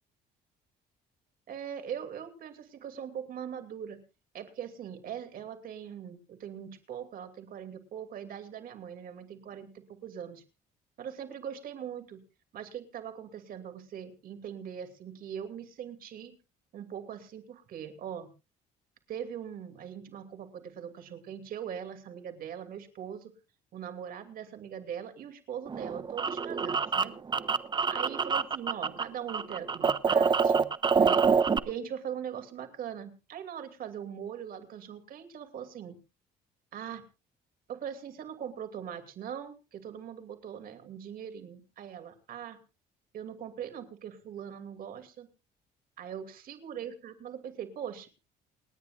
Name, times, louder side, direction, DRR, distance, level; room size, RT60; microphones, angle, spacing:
voice 1, 1.5-4.0 4.3-10.4 11.0-12.2 12.5-16.4 16.7-18.3 19.1-23.3 23.7-27.1 27.9-30.7 31.0-31.2 31.7-36.0 36.7-37.0 37.7-42.6 43.1-45.3 46.0-48.1, right 8 dB, 60° right, 8 dB, 2.7 m, -41 dB
sound 1, 25.7-29.0 29.3-31.6, right 5 dB, 25° right, 0.7 m, -26 dB
29.0 x 9.7 x 2.5 m, 0.30 s
cardioid pair, 110°, 17 cm